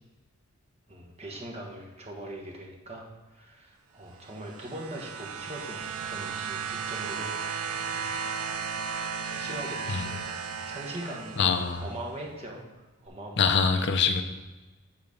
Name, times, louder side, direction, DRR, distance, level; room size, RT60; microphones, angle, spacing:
voice 1, 0.9-8.2 8.8-11.4 11.8-12.6 13.0-13.6, right 1 dB, 30° right, 0 dB, 1.2 m, -41 dB
sound 1, 4.2-12.0 13.1-13.2, right 6 dB, 85° right, 0.5 m, -35 dB
voice 2, 11.4-11.8 13.4-14.2, left 5 dB, 50° left, 7 dB, 0.6 m, -24 dB
8.5 x 3.9 x 5.2 m, 1.2 s
head